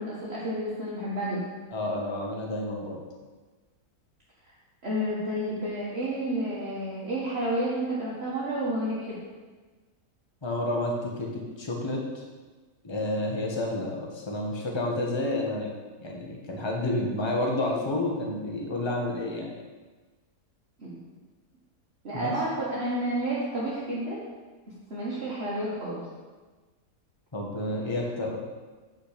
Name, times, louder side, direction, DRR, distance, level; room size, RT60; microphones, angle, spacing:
voice 1, 0.0-1.4 4.8-9.2 20.8-21.0 22.0-24.2 24.9-26.0, right 1 dB, 40° right, -8 dB, 1.7 m, -30 dB
voice 2, 1.7-3.0 10.4-11.3 11.6-12.2 12.8-15.7 16.0-19.5 22.1-22.3 27.3-28.4, left 1 dB, 20° left, -1 dB, 1.2 m, -30 dB
8.8 x 5.8 x 5.0 m, 1.3 s
omnidirectional pair, 1.7 m